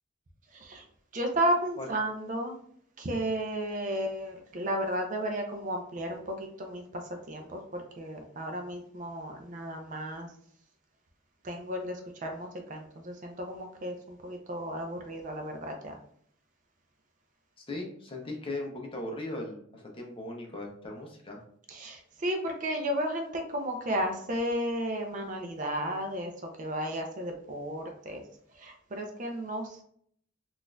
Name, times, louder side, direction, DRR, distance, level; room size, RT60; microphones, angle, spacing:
voice 1, 0.5-0.8 1.1-2.6 3.0-10.3 11.4-16.0 21.7-26.3 26.6-28.2 28.5-29.8, right 1 dB, 40° right, 3 dB, 0.4 m, -33 dB
voice 2, 17.6-21.4, left 2 dB, 25° left, 1 dB, 0.6 m, -38 dB
4.0 x 2.4 x 2.2 m, 0.64 s
head